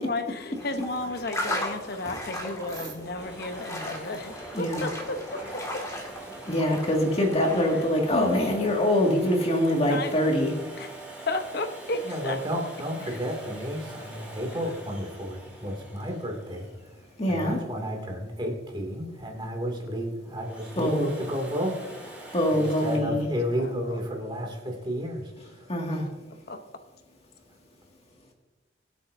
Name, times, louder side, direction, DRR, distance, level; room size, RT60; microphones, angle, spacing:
voice 1, 0.0-5.8 9.9-10.1 10.8-10.9 11.3-12.4 13.1-13.2 23.0-23.3 23.6-24.0 26.5-26.6, left 2 dB, 55° left, 7 dB, 0.9 m, -33 dB
sound 1, 0.6-8.1, left 1 dB, 20° left, 2.0 m, -37 dB
Domestic sounds home sounds, 3.2-17.9 20.2-23.0, right 1 dB, 5° right, 4.2 m, -44 dB
voice 2, 4.5-4.9 6.5-10.5 17.2-17.6 20.8-21.1 22.3-23.3 25.7-26.1, left 1 dB, 35° left, 0 dB, 2.2 m, -24 dB
voice 3, 12.0-16.7 17.3-21.8 22.2-25.7, equal, 25° right, 1 dB, 2.5 m, -32 dB
23.0 x 8.3 x 2.7 m, 1.2 s
head